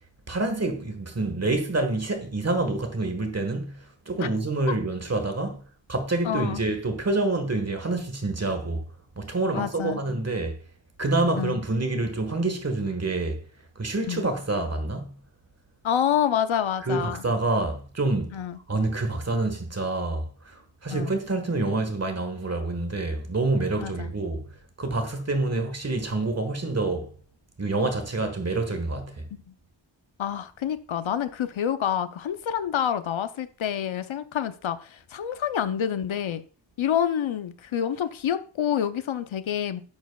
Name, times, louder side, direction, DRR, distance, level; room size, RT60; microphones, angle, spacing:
voice 1, 0.3-5.6 5.9-8.8 9.2-10.6 11.0-13.4 13.7-15.1 16.8-18.3 18.7-24.5 24.8-27.1 27.6-29.3, right 2 dB, 35° right, 1.5 m, -27 dB
voice 2, 6.2-6.6 9.5-10.0 11.4-11.6 14.1-14.2 15.8-17.2 18.3-18.6 20.9-21.1 23.8-24.1 29.3-29.4 30.2-36.4 36.8-39.8, left 9 dB, 85° left, 0.7 m, -27 dB
10.5 x 7.3 x 2.3 m
wide cardioid pair, 105°, 46 cm